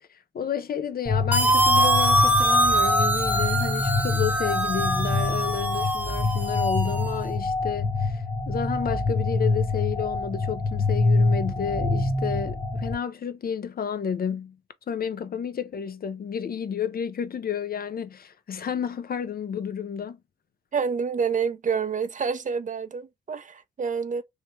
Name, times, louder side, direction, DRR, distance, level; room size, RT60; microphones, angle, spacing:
voice 1, 0.0-14.6 14.9-20.2, left 8 dB, 50° left, 0.5 m, -31 dB
sound 1, 1.1-12.9, left 3 dB, 25° left, 1.1 m, -26 dB
sound 2, 1.3-7.1, right 1 dB, 10° right, 0.8 m, -23 dB
voice 2, 20.7-24.2, right 6 dB, 40° right, 0.5 m, -28 dB
3.2 x 2.1 x 3.0 m
supercardioid pair, 50°, 19 cm